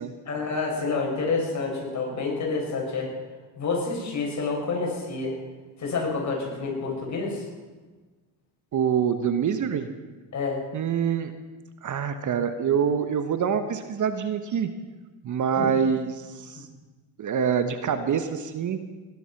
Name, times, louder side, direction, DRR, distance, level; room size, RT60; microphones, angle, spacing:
voice 1, 0.3-3.1 3.6-5.4 5.8-7.4 10.3-10.6 15.6-15.7 16.5-16.6, left 4 dB, 40° left, -1 dB, 6.7 m, -28 dB
voice 2, 8.7-9.9 10.7-11.3 11.8-14.7 15.2-16.7 17.2-18.8, right 7 dB, 45° right, 9 dB, 1.3 m, -25 dB
19.0 x 11.0 x 6.0 m, 1.3 s
supercardioid pair, 90°, 42 cm